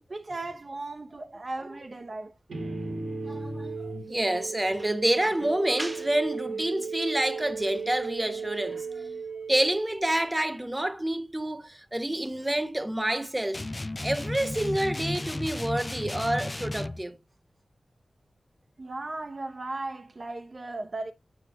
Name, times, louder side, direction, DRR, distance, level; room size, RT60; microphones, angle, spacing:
voice 1, 0.1-2.4 18.8-21.1, right 2 dB, 45° right, 0.6 m, -36 dB
sound 1, 2.5-10.4, right 4 dB, 80° right, 1.7 m, -36 dB
voice 2, 3.2-9.1 9.5-13.6 14.0-17.2, right 1 dB, 15° right, 0.9 m, -28 dB
sound 2, 13.5-17.0, left 2 dB, 25° left, 0.3 m, -34 dB
7.7 x 5.7 x 2.9 m
wide cardioid pair, 95°, 0 cm